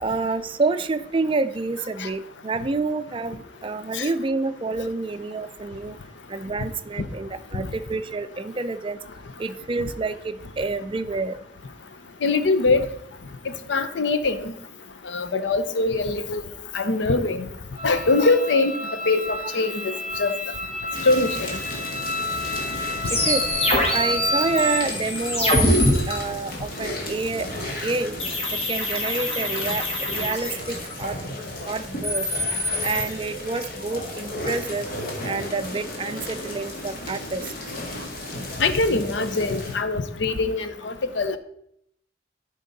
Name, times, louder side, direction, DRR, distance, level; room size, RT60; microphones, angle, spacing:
voice 1, 0.0-6.0 6.3-9.0 9.4-11.4 23.1-23.4 23.9-25.5 26.1-27.5 27.8-28.2 28.5-31.2 31.7-32.2 32.8-34.9 35.2-37.5, right 3 dB, 30° right, 11 dB, 0.4 m, -28 dB
voice 2, 12.2-12.9 13.7-14.5 15.1-16.4 16.7-17.4 17.8-18.7 19.1-19.9 20.2-20.3 21.0-21.5 38.6-41.4, left 3 dB, 85° left, 11 dB, 0.7 m, -22 dB
sound 1, 17.8-24.8, left 1 dB, 70° left, 2.8 m, -31 dB
sound 2, 20.9-39.8, left 1 dB, 55° left, 1.9 m, -34 dB
sound 3, 23.0-25.9 28.2-31.0 31.8-33.1, left 1 dB, 35° left, 1.8 m, -24 dB
12.0 x 5.3 x 4.0 m, 0.74 s
head